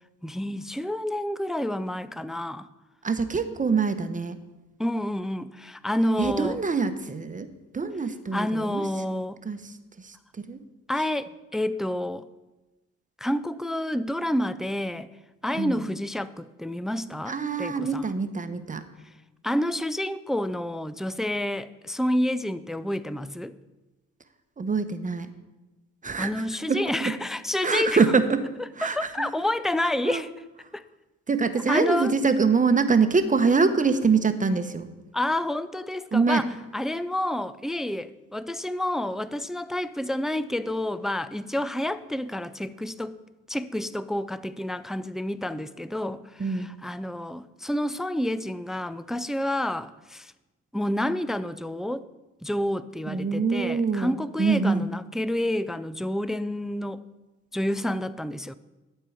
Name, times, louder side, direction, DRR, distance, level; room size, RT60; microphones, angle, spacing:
voice 1, 0.2-2.7 4.8-6.6 8.3-9.4 10.9-12.3 13.2-15.1 15.4-18.1 19.4-23.6 26.2-28.1 28.8-30.3 30.7-30.8 31.7-32.1 35.1-43.2 43.5-50.3 50.7-52.1 52.4-57.0 57.5-58.5, left 1 dB, ahead, 0.3 m, -29 dB
voice 2, 3.0-4.4 6.2-7.5 7.7-8.8 9.4-9.6 10.0-10.6 15.6-15.8 17.3-18.8 24.6-25.3 26.0-27.1 27.6-28.4 28.8-29.3 30.0-30.2 31.3-34.9 36.1-36.4 46.4-46.7 53.1-54.9, right 4 dB, 25° right, 0.9 m, -24 dB
12.5 x 4.6 x 8.4 m
cardioid pair, 90°, 30 cm